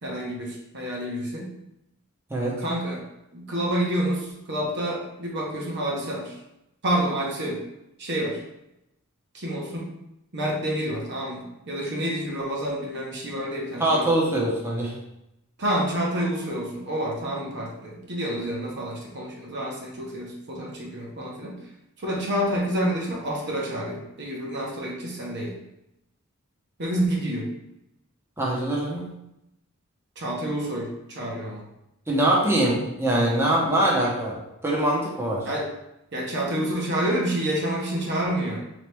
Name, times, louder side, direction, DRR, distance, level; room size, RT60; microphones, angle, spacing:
voice 1, 0.0-1.5 2.6-3.0 3.3-6.4 6.8-7.6 8.0-8.4 9.3-9.9 10.3-14.1 15.6-21.6 22.0-25.5 26.8-27.5 30.2-31.6 35.4-35.7 36.1-38.6, right 1 dB, 55° right, -2 dB, 0.9 m, -28 dB
voice 2, 13.8-14.9 28.4-29.1 32.1-34.4 34.6-35.5, right 1 dB, 10° right, -4 dB, 0.7 m, -23 dB
4.0 x 3.0 x 3.4 m, 0.87 s
head